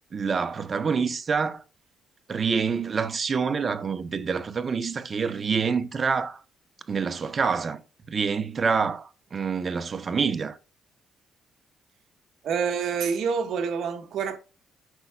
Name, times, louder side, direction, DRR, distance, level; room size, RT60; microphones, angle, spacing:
voice 1, 0.0-1.6 2.3-6.4 6.9-7.8 8.1-10.6, right 5 dB, 40° right, 0.8 m, -27 dB
voice 2, 12.4-14.4, right 6 dB, 70° right, 1.3 m, -27 dB
12.5 x 5.6 x 2.3 m
cardioid pair, 90°, 0 cm